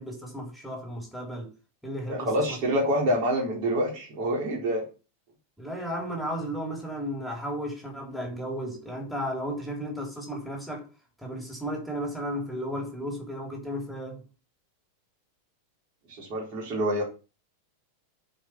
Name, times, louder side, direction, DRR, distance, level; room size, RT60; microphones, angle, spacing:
voice 1, 0.0-1.5 1.8-2.6 5.6-10.9 11.2-14.2, equal, ahead, 3.4 m, -34 dB
voice 2, 2.1-4.9 16.1-17.0, equal, 40° right, 4.0 m, -27 dB
9.0 x 5.0 x 5.9 m
figure-of-eight pair, 90°, 0 cm